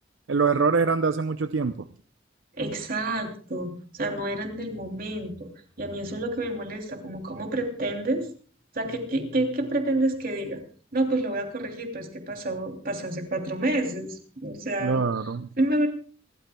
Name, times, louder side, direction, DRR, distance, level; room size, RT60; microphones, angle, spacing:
voice 1, 0.3-1.9 14.8-15.5, right 4 dB, 75° right, 10 dB, 0.6 m, -24 dB
voice 2, 2.6-5.5 5.8-8.3 8.7-10.6 10.9-15.0 15.6-15.9, right 1 dB, 50° right, 3 dB, 3.0 m, -28 dB
27.5 x 13.0 x 2.3 m, 0.42 s
head